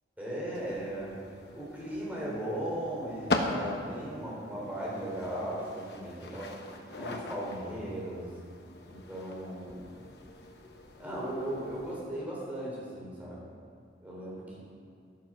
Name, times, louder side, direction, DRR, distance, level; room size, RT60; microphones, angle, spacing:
voice 1, 0.2-1.2 1.5-6.5 7.0-8.3 8.9-9.8 11.0-13.4 14.0-14.6, right 1 dB, 10° right, -6 dB, 3.6 m, -37 dB
Pillow hit, 0.5-12.0, left 2 dB, 60° left, 1.1 m, -40 dB
11.5 x 9.3 x 6.0 m, 2.2 s
head